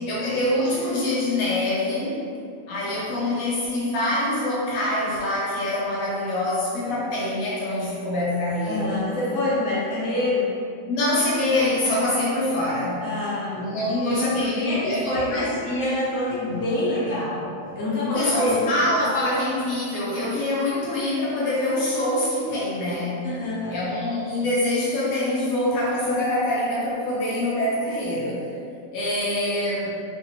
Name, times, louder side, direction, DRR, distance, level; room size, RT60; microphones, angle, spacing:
voice 1, 0.1-2.2 2.7-8.9 10.9-13.0 13.6-15.5 18.0-23.2 23.7-28.5 28.9-29.9, left 1 dB, 90° left, -7 dB, 1.1 m, -25 dB
voice 2, 8.7-10.5 13.0-18.5 23.2-23.8, left 1 dB, 70° left, -8 dB, 1.3 m, -26 dB
3.1 x 2.6 x 2.8 m, 2.4 s
omnidirectional pair, 1.4 m